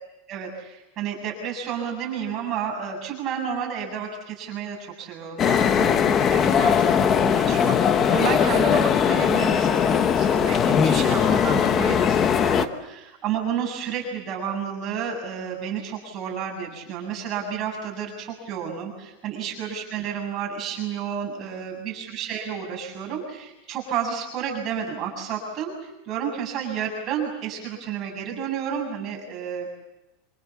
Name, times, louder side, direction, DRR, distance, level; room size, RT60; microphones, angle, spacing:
voice 1, 0.3-29.7, right 7 dB, 30° right, 0 dB, 7.4 m, -31 dB
sound 1, 5.4-12.7, left 7 dB, 25° left, 1.1 m, -20 dB
26.5 x 26.0 x 7.3 m, 0.95 s
supercardioid pair, 160°, 0 cm